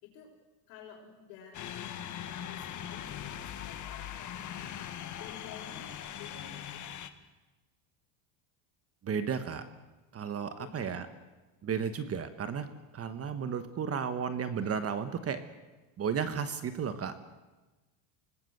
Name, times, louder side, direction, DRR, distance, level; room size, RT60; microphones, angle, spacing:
voice 1, 0.7-1.9 2.3-4.6 5.1-6.9 10.6-11.2, left 7 dB, 80° left, -5 dB, 5.7 m, -51 dB
sound 1, 1.5-7.1, left 10 dB, 35° left, 1.5 m, -41 dB
voice 2, 9.0-9.6 10.1-11.1 11.6-12.7 12.9-15.4 16.0-17.1, right 7 dB, 30° right, 11 dB, 1.3 m, -33 dB
25.5 x 19.0 x 8.0 m, 1.2 s
cardioid pair, 145°, 50 cm